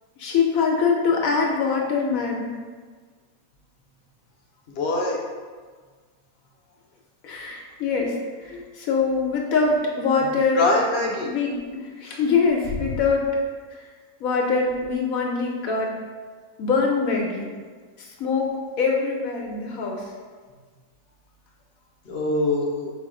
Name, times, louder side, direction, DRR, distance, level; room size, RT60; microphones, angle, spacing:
voice 1, 0.2-2.5 7.2-10.7 11.2-13.3 14.2-15.9 16.6-17.5 18.0-20.1, left 4 dB, 75° left, -1 dB, 1.0 m, -23 dB
voice 2, 4.7-5.2 10.6-11.3 22.1-22.9, left 2 dB, 55° left, -2 dB, 0.8 m, -23 dB
5.2 x 2.5 x 3.7 m, 1.5 s
omnidirectional pair, 1.5 m